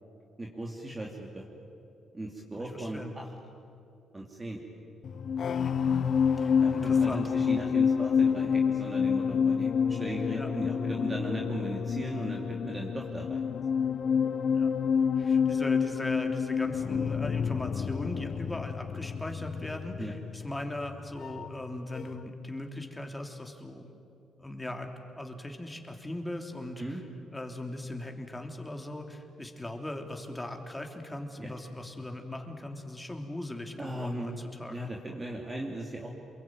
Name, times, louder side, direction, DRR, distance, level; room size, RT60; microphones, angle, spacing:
voice 1, 0.4-1.4 2.1-3.3 4.1-4.6 6.6-13.7 20.0-20.1 26.8-27.0 31.4-31.5 33.8-34.4 34.7-36.1, right 1 dB, 20° right, -1 dB, 3.0 m, -37 dB
voice 2, 2.5-3.1 5.6-5.7 6.2-7.3 10.3-10.5 14.5-14.7 15.2-23.9 24.4-24.9 25.2-27.0 27.3-35.2, left 1 dB, 10° left, 3 dB, 3.2 m, -39 dB
sound 1, 5.0-21.7 21.9-22.3, left 6 dB, 55° left, 0.7 m, -28 dB
28.0 x 22.5 x 9.2 m, 2.7 s
cardioid pair, 90°, 0 cm